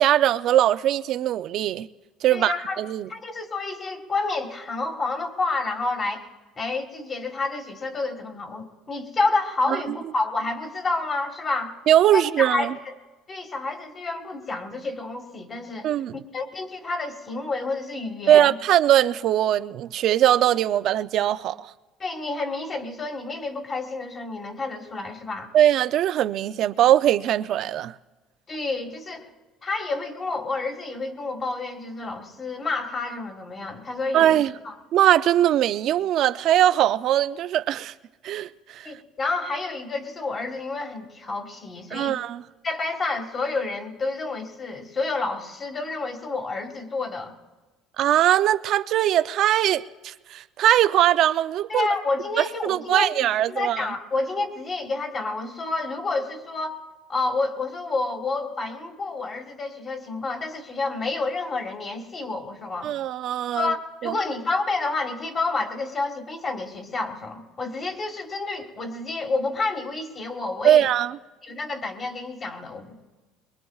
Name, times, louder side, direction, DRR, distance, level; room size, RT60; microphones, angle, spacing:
voice 1, 0.0-1.9 2.2-3.1 9.7-9.9 11.9-12.7 15.8-16.2 18.3-21.7 25.5-27.9 34.1-34.5 34.9-37.9 38.2-38.9 41.9-42.4 48.0-51.9 52.6-53.9 62.8-63.7 64.0-64.1 70.6-71.1, right 12 dB, 55° right, 0.4 m, -21 dB
voice 2, 2.3-2.8 3.1-6.2 6.5-11.7 12.1-12.9 13.3-15.9 16.3-18.5 22.0-25.5 28.5-29.3 29.6-34.7 38.8-42.2 42.6-47.3 51.7-56.7 57.1-62.9 63.5-70.9 71.4-73.0, left 3 dB, 30° left, 1.7 m, -29 dB
23.0 x 22.0 x 2.4 m
cardioid pair, 125°, 0 cm